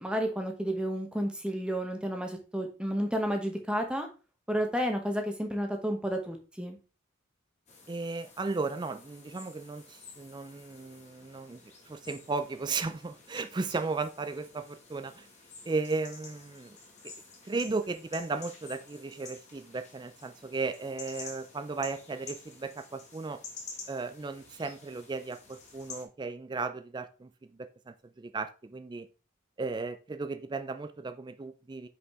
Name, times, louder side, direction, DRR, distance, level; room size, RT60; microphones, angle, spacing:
voice 1, 0.0-4.1 4.5-6.8, equal, 5° right, 4 dB, 1.0 m, -31 dB
sound 1, 7.7-26.0, left 4 dB, 35° left, 1.5 m, -50 dB
voice 2, 7.9-15.3 15.7-16.8 17.0-17.1 17.5-23.4 23.9-29.1 29.6-31.9, right 3 dB, 20° right, 11 dB, 0.3 m, -35 dB
5.4 x 5.0 x 3.6 m, 0.33 s
head